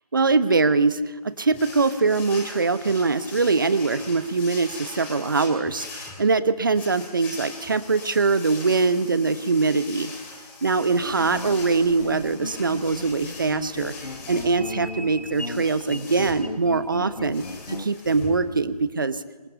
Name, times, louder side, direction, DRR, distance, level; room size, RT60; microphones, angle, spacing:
voice 1, 0.1-10.1 10.6-13.9 14.3-19.5, right 4 dB, 30° right, 13 dB, 1.0 m, -23 dB
sound 1, 1.5-18.9, left 3 dB, 5° left, 2.5 m, -42 dB
sound 2, 10.8-17.9, left 2 dB, 75° left, 1.6 m, -36 dB
26.5 x 25.5 x 8.1 m, 1.3 s
figure-of-eight pair, 160°, 21 cm